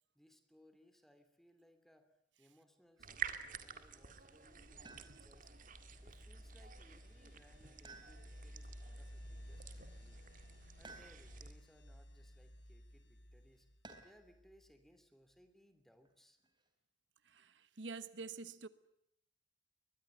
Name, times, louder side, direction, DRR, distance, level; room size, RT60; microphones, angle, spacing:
voice 1, 0.1-2.1 2.4-5.5 6.0-10.2 10.8-13.7 14.0-16.4, equal, ahead, 2.8 m, -67 dB
sound 1, 3.0-11.5, right 7 dB, 45° right, 2.0 m, -50 dB
sound 2, 4.3-14.9, equal, 75° left, 3.0 m, -56 dB
sound 3, 4.9-5.5 7.8-8.6 10.8-11.6 13.8-14.4 16.1-16.7, right 3 dB, 25° right, 3.8 m, -57 dB
voice 2, 17.2-18.7, right 4 dB, 85° right, 1.2 m, -47 dB
23.0 x 21.0 x 9.5 m
head